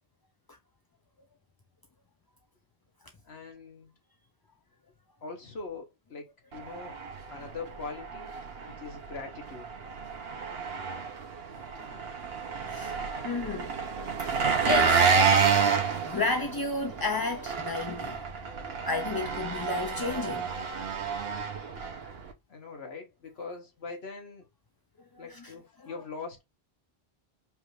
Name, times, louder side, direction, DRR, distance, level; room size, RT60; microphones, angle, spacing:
voice 1, 3.2-4.0 5.2-7.0 7.3-8.3 8.7-9.7 22.5-24.5 25.2-26.4, left 4 dB, 70° left, 1.5 m, -42 dB
Engine, 6.5-22.3, right 6 dB, 70° right, 1.1 m, -29 dB
voice 2, 12.4-13.7 14.2-15.4 15.9-18.2 18.9-20.5 25.1-25.9, left 3 dB, 35° left, 0.4 m, -33 dB
5.1 x 2.5 x 3.2 m
omnidirectional pair, 1.1 m